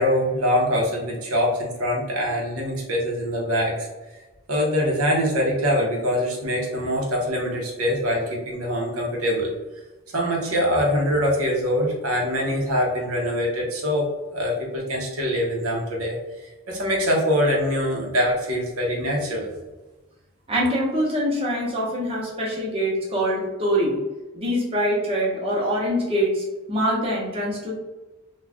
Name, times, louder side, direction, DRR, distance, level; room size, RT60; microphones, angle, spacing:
voice 1, 0.0-3.9 4.1-4.2 4.5-9.5 10.1-16.2 16.4-19.5, equal, 90° right, -1 dB, 0.8 m, -24 dB
voice 2, 20.5-24.0 24.3-27.7, equal, 25° right, -3 dB, 0.7 m, -24 dB
2.4 x 2.2 x 3.4 m, 1.1 s
head